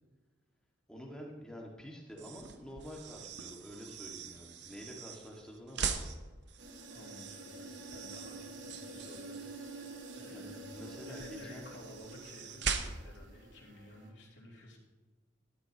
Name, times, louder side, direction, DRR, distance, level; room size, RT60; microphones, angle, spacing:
voice 1, 0.9-6.1 10.2-11.7, equal, 5° left, -2 dB, 1.9 m, -48 dB
sound 1, 2.1-13.3, right 6 dB, 65° right, 0.8 m, -42 dB
sound 2, 6.6-14.1, right 1 dB, 80° right, 1.8 m, -49 dB
voice 2, 6.9-9.8 10.1-10.6 11.0-14.8, left 1 dB, 70° left, -4 dB, 2.9 m, -53 dB
13.5 x 12.5 x 3.0 m, 1.3 s
head